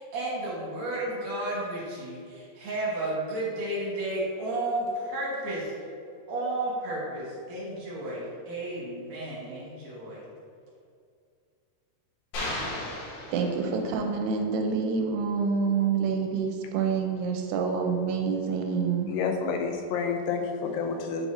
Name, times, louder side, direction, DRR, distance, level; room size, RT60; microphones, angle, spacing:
voice 1, 0.0-5.7 6.3-10.2, right 1 dB, 60° right, -6 dB, 2.6 m, -32 dB
sound 1, 12.3-14.1, left 1 dB, 70° left, 3.0 m, -35 dB
voice 2, 13.3-19.1, right 5 dB, 90° right, 2 dB, 2.7 m, -27 dB
voice 3, 19.1-21.3, left 5 dB, 90° left, 4 dB, 2.7 m, -29 dB
9.3 x 4.8 x 2.7 m, 2.3 s
omnidirectional pair, 4.7 m